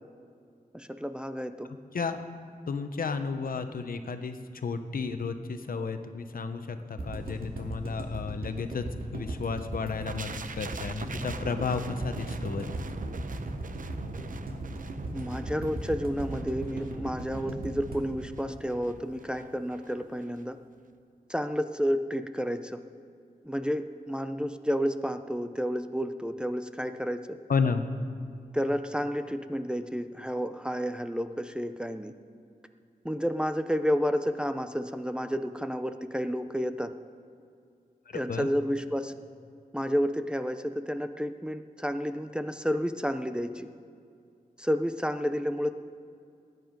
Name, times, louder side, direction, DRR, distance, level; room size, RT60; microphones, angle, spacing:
voice 1, 0.7-1.7 15.1-20.6 21.3-22.8 23.4-27.3 28.5-32.1 33.0-36.9 38.1-39.1 39.7-43.7 44.6-45.7, equal, 5° right, 8 dB, 0.5 m, -31 dB
voice 2, 1.9-2.2 2.7-12.8 27.5-27.8 38.1-38.5, left 5 dB, 75° left, 8 dB, 0.9 m, -32 dB
sound 1, 7.0-19.1 19.4-19.5 19.7-19.8, right 1 dB, 90° right, 2.1 m, -37 dB
sound 2, 10.1-19.9 20.2-20.4, right 5 dB, 65° right, 0.7 m, -43 dB
19.0 x 9.4 x 5.2 m, 2.4 s
wide cardioid pair, 105°, 15 cm